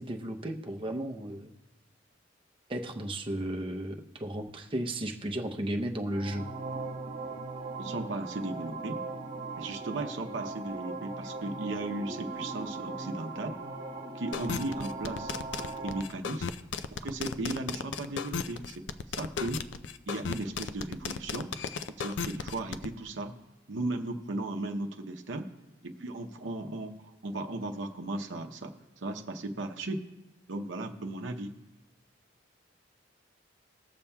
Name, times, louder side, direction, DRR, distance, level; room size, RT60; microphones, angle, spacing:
voice 1, 0.0-1.5 2.7-6.5, right 1 dB, 30° right, 4 dB, 0.6 m, -34 dB
sound 1, 6.0-16.0, right 3 dB, 45° right, 1.1 m, -39 dB
voice 2, 7.8-9.0 9.6-13.6 14.1-15.3 15.8-16.5 17.0-18.8 19.2-19.6 20.1-21.5 22.0-23.3 23.7-25.5 25.8-30.0 30.5-31.5, right 2 dB, 75° right, 4 dB, 0.7 m, -36 dB
sound 2, 14.3-22.9, left 6 dB, 70° left, 0.4 m, -35 dB
21.0 x 7.0 x 2.3 m, 1.0 s
head